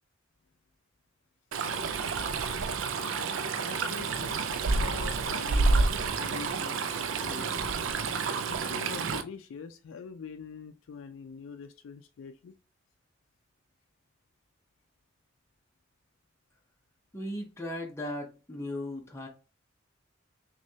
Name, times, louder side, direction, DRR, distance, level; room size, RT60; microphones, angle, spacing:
Stream, 1.5-9.2, right 4 dB, 75° right, 0.4 m, -29 dB
voice 1, 3.6-7.7 8.5-12.6, left 5 dB, 80° left, 0.3 m, -44 dB
voice 2, 17.1-19.3, left 1 dB, 15° left, 0.6 m, -37 dB
6.0 x 2.2 x 2.7 m
head